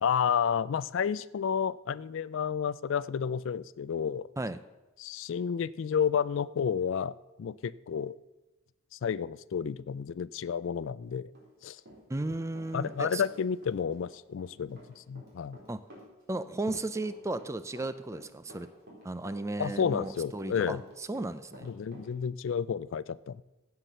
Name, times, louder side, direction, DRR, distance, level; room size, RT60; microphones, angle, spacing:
voice 1, 0.0-4.3 5.0-8.2 8.9-11.3 11.6-11.8 12.7-15.6 19.6-20.8 21.6-23.4, left 7 dB, 60° left, 19 dB, 0.3 m, -31 dB
Run, 11.3-13.0 13.3-22.1, equal, 50° right, 3.8 m, -51 dB
voice 2, 12.1-13.2 15.7-15.8 16.3-18.7 19.0-21.7, right 2 dB, 15° right, 13 dB, 0.4 m, -35 dB
15.5 x 5.9 x 6.6 m, 1.1 s
head